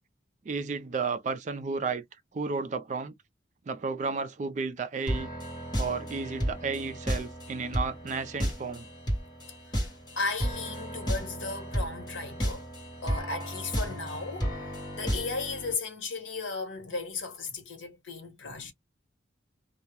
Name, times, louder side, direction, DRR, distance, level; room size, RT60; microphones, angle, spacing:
voice 1, 0.5-2.0 2.3-3.1 3.7-5.3 5.8-8.9, right 4 dB, 40° right, 0.3 m, -32 dB
sound 1, 5.1-15.7, equal, 20° left, 1.0 m, -33 dB
voice 2, 10.2-12.7 13.0-14.7 14.9-18.7, left 3 dB, 85° left, 1.0 m, -35 dB
2.2 x 2.0 x 2.9 m
head